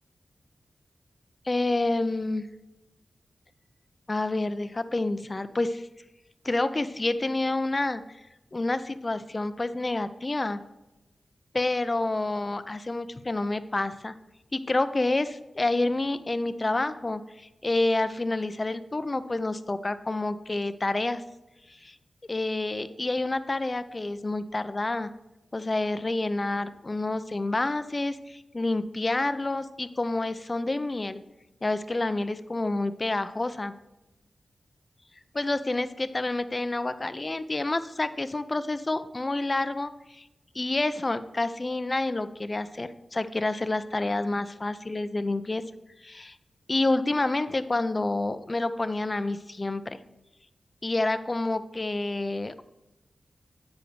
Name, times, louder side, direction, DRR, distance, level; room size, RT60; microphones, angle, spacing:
voice 1, 1.5-2.5 4.1-5.9 6.4-8.0 8.5-10.6 11.5-14.1 14.5-21.2 21.8-22.0 22.3-25.1 25.5-31.2 31.6-33.7 35.3-40.2 40.5-45.6 46.0-46.3 46.7-50.0 50.8-52.6, left 2 dB, 35° left, 12 dB, 0.5 m, -28 dB
9.1 x 5.0 x 4.7 m, 0.99 s
wide cardioid pair, 80°, 0 cm